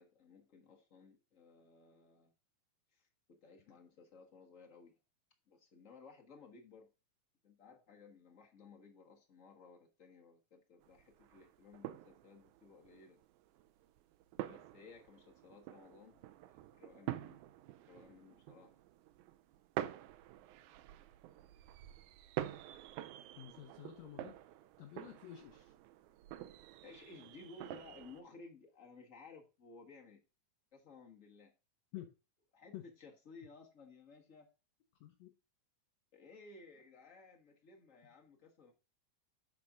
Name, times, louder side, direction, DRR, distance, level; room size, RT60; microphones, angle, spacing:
voice 1, 0.0-2.3 2.9-5.0 5.5-6.9 7.4-13.2 14.4-16.3 16.5-17.4 17.9-18.8 26.8-30.2 30.7-31.5 32.5-34.5 36.1-38.7, left 4 dB, 40° left, 1 dB, 1.1 m, -58 dB
sound 1, 10.8-28.2, right 13 dB, 80° right, 2.0 m, -48 dB
voice 2, 23.4-24.3 24.8-25.7 31.9-32.1 32.7-32.9 35.0-35.3, left 12 dB, 70° left, 5 dB, 1.9 m, -50 dB
11.5 x 4.3 x 3.7 m, 0.30 s
omnidirectional pair, 3.6 m